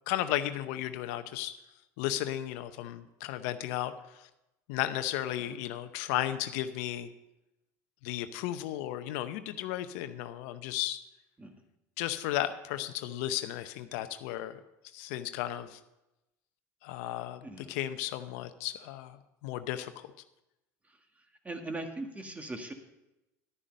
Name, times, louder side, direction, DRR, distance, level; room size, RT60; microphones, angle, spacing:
voice 1, 0.1-1.5 2.0-4.3 4.7-7.1 8.0-11.0 12.0-14.6 14.9-15.8 16.8-20.1, left 13 dB, 75° left, 10 dB, 0.7 m, -34 dB
voice 2, 17.4-17.7 21.5-22.7, right 2 dB, 15° right, 5 dB, 1.8 m, -40 dB
11.5 x 9.9 x 5.3 m, 0.93 s
hypercardioid pair, 85°, 9 cm